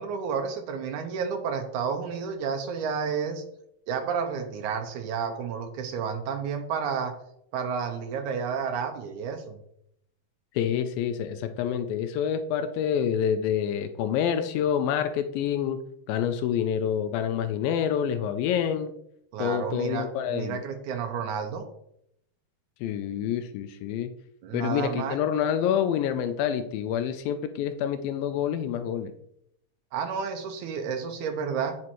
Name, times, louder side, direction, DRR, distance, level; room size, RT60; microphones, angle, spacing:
voice 1, 0.0-3.4 3.9-7.1 7.5-9.6 19.3-21.7 24.4-25.2 29.9-31.8, right 6 dB, 80° right, 6 dB, 1.8 m, -31 dB
voice 2, 10.6-15.8 16.1-18.9 19.4-20.6 22.8-24.1 24.5-29.1, left 9 dB, 85° left, 8 dB, 2.3 m, -27 dB
8.5 x 6.0 x 3.0 m, 0.74 s
omnidirectional pair, 4.1 m